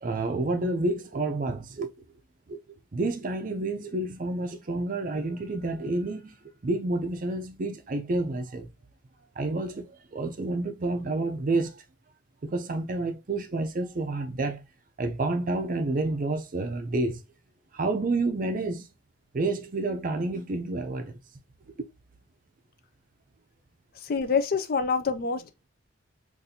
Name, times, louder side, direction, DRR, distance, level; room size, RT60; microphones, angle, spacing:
voice 1, 0.0-1.9 2.5-2.6 2.9-6.4 6.6-8.7 9.4-11.8 12.4-14.6 15.0-17.2 17.7-18.9 19.3-21.2, right 2 dB, 40° right, 0.5 m, -29 dB
voice 2, 24.0-25.7, left 5 dB, 50° left, 0.4 m, -27 dB
4.0 x 2.6 x 2.7 m
head